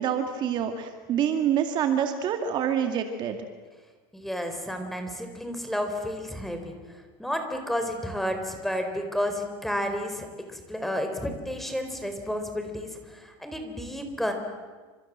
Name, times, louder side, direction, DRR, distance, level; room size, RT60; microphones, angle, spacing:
voice 1, 0.0-3.4, right 9 dB, 40° right, 6 dB, 2.3 m, -26 dB
voice 2, 4.1-14.3, equal, ahead, 5 dB, 4.2 m, -31 dB
29.0 x 26.5 x 7.5 m, 1.4 s
supercardioid pair, 145°, 11 cm